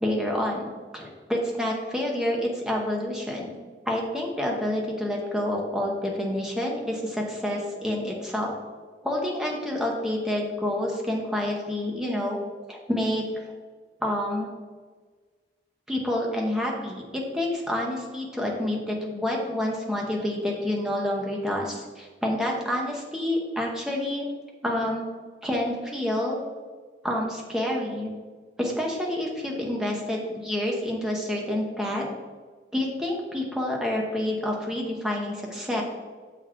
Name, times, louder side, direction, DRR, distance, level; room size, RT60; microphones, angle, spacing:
voice 1, 0.0-3.5 3.9-8.5 9.0-12.4 12.7-13.5 14.0-14.5 15.9-24.3 24.6-25.1 25.4-26.4 27.0-28.1 28.6-32.1 32.7-35.8, left 1 dB, 5° right, -2 dB, 0.9 m, -28 dB
7.0 x 4.1 x 4.6 m, 1.5 s
head